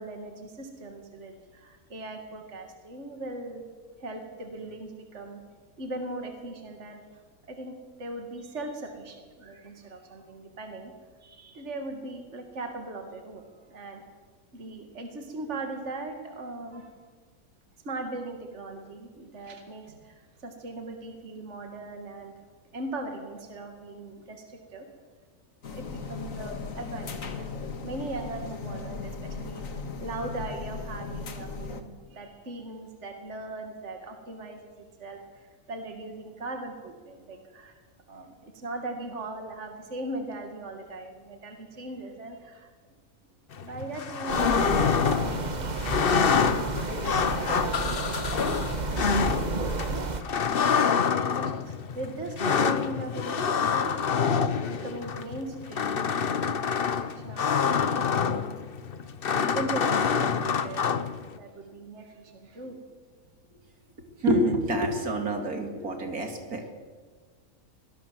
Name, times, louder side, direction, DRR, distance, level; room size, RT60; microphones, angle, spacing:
voice 1, 0.0-3.6 4.0-5.4 5.8-7.0 7.5-10.9 11.2-14.1 14.5-17.0 17.8-22.5 22.7-24.9 25.7-34.7 35.0-37.8 38.1-42.7 43.6-46.3 47.2-48.5 49.1-54.3 54.6-58.4 59.0-62.8, right 2 dB, 50° right, 5 dB, 2.5 m, -39 dB
sound 1, 25.6-31.8, left 4 dB, 60° left, 2.0 m, -37 dB
sound 2, 43.5-61.4, left 6 dB, 45° left, 1.0 m, -27 dB
sound 3, 44.3-50.2, right 3 dB, 30° right, 1.2 m, -31 dB
voice 2, 64.1-66.7, right 1 dB, 75° right, 5 dB, 3.2 m, -27 dB
24.5 x 19.0 x 7.7 m, 1.5 s
omnidirectional pair, 1.6 m